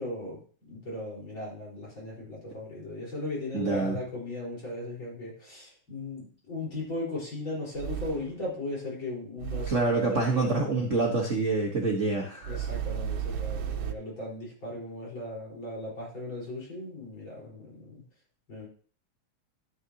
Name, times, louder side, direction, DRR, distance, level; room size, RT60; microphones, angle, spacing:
voice 1, 0.0-10.5 12.5-18.0 18.5-18.7, left 2 dB, 40° left, -5 dB, 5.3 m, -37 dB
voice 2, 3.5-4.0 9.7-12.6, right 3 dB, 35° right, 0 dB, 1.2 m, -26 dB
sound 1, 6.8-6.9 7.8-8.4 9.4-10.0 12.4-13.9, right 9 dB, 80° right, 2.2 m, -33 dB
11.5 x 10.0 x 2.9 m, 0.43 s
omnidirectional pair, 3.4 m